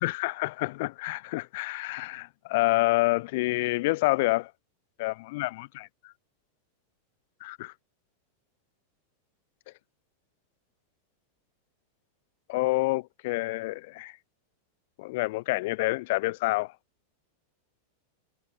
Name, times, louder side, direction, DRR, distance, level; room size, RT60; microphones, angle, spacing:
voice 1, 0.0-4.5 5.0-6.1 7.4-7.7 12.5-14.1 15.0-16.7, left 21 dB, 50° left, 2.2 m, -28 dB
figure-of-eight pair, 90°, 0 cm